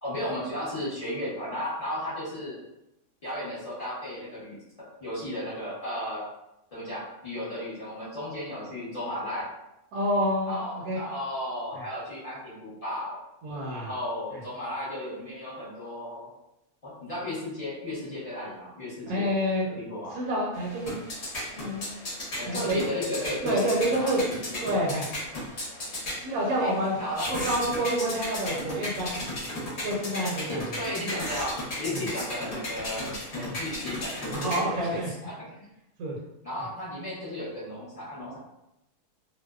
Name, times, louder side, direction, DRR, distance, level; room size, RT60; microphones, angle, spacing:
voice 1, 0.0-2.6 3.2-4.6 5.0-6.2 6.7-9.5 10.4-13.2 13.7-16.3 16.8-19.3 19.7-20.1 22.4-24.6 26.6-26.7 27.0-27.3 30.2-33.0 33.3-35.7 36.4-38.4, left 1 dB, 35° left, -9 dB, 0.7 m, -34 dB
voice 2, 9.9-11.0 13.4-13.9 19.1-19.6 20.1-21.0 21.5-22.1 22.5-22.8 23.4-24.2 24.6-25.1 26.2-27.0 27.3-29.4 29.8-30.6 31.9-32.0 33.5-33.6 34.3-35.1 36.0-36.2, equal, 70° right, -4 dB, 1.0 m, -28 dB
sound 1, 20.5-35.0, left 1 dB, 50° left, 1.0 m, -35 dB
2.6 x 2.0 x 2.3 m, 0.89 s
omnidirectional pair, 1.7 m